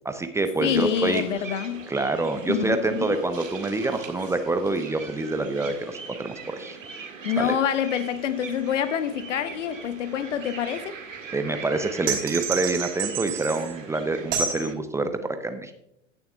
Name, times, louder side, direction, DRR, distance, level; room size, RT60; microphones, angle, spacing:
voice 1, 0.0-1.2 1.9-6.8 7.4-7.6 11.3-15.7, right 2 dB, 10° right, 0.5 m, -26 dB
voice 2, 0.6-1.9 2.5-3.3 7.2-11.0, left 9 dB, 70° left, 0.9 m, -26 dB
sound 1, 0.7-14.7, right 5 dB, 85° right, 1.9 m, -41 dB
sound 2, 12.1-13.7 14.3-14.7, right 7 dB, 50° right, 3.4 m, -29 dB
17.0 x 6.9 x 2.3 m
figure-of-eight pair, 95°, 38 cm